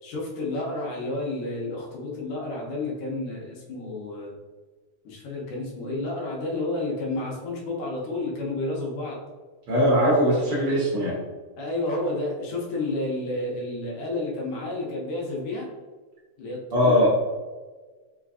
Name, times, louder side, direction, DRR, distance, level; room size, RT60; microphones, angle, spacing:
voice 1, 0.0-4.3 5.0-9.2 11.6-15.7 16.4-17.1, left 2 dB, 90° left, -3 dB, 2.3 m, -31 dB
voice 2, 9.7-11.2 16.7-17.1, equal, 80° right, -6 dB, 1.2 m, -20 dB
5.0 x 2.4 x 2.5 m, 1.3 s
omnidirectional pair, 3.4 m